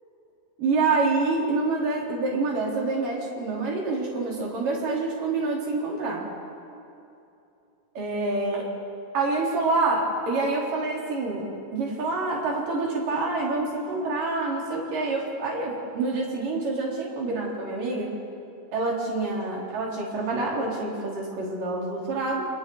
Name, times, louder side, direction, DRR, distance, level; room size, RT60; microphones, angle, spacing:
voice 1, 0.6-6.3 8.0-8.7 9.1-11.5 11.7-18.1 18.7-22.5, right 3 dB, 45° right, -3 dB, 5.3 m, -27 dB
28.5 x 27.5 x 4.8 m, 2.7 s
omnidirectional pair, 5.8 m